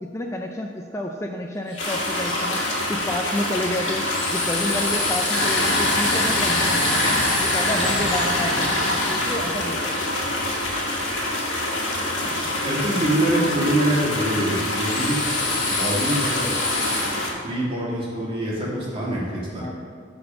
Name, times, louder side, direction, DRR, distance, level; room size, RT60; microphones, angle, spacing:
voice 1, 0.0-2.6 2.9-4.0 4.3-6.9 7.4-8.7 9.1-9.9 19.6-19.7, left 1 dB, 15° left, 2 dB, 0.4 m, -29 dB
Drill, 1.7-10.6 14.0-17.0, left 3 dB, 45° left, 2.0 m, -30 dB
sound 1, 1.8-17.3, left 1 dB, 65° left, 1.8 m, -25 dB
voice 2, 12.6-15.2 15.6-16.5 17.4-19.6, right 1 dB, 30° right, -5 dB, 2.2 m, -25 dB
11.0 x 4.3 x 5.5 m, 2.1 s
head